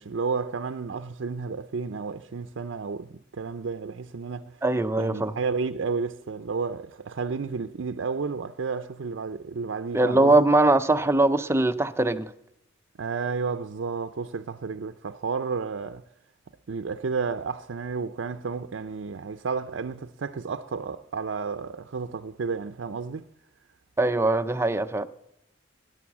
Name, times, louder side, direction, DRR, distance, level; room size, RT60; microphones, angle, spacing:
voice 1, 0.0-4.6 5.0-10.4 13.0-16.0 16.7-23.3, right 5 dB, 80° right, 0.5 m, -32 dB
voice 2, 4.6-5.4 9.9-12.3 24.0-25.1, right 2 dB, 15° right, 0.5 m, -21 dB
18.5 x 10.5 x 7.2 m
head